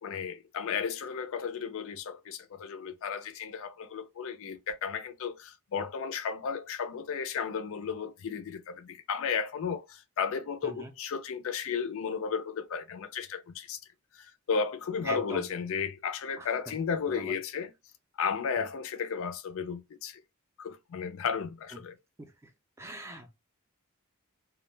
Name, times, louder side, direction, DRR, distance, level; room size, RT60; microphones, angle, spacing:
voice 1, 0.0-13.8 14.1-17.7 18.2-20.2 20.6-22.0, left 6 dB, 65° left, 0.4 m, -34 dB
voice 2, 15.0-15.4 16.4-16.5 17.1-17.3 18.6-18.7 22.8-23.3, right 1 dB, 10° right, 0.4 m, -41 dB
2.2 x 2.1 x 3.1 m
head